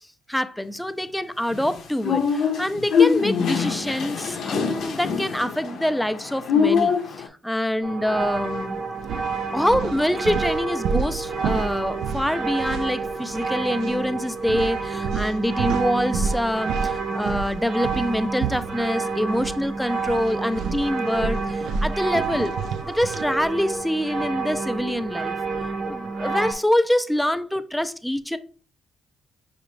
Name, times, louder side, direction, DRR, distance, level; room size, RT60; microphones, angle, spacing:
voice 1, 0.3-8.8 9.5-22.5 22.8-25.3 25.9-28.4, equal, 5° left, 0.4 m, -25 dB
sound 1, 1.5-7.3, left 6 dB, 70° left, 0.6 m, -23 dB
sound 2, 7.8-26.5, right 4 dB, 60° right, 0.7 m, -29 dB
sound 3, 8.3-8.6 9.0-13.5 13.7-14.0 14.5-19.6 19.9-23.3, right 5 dB, 75° right, 0.3 m, -31 dB
5.6 x 2.5 x 3.1 m
cardioid pair, 90°, 0 cm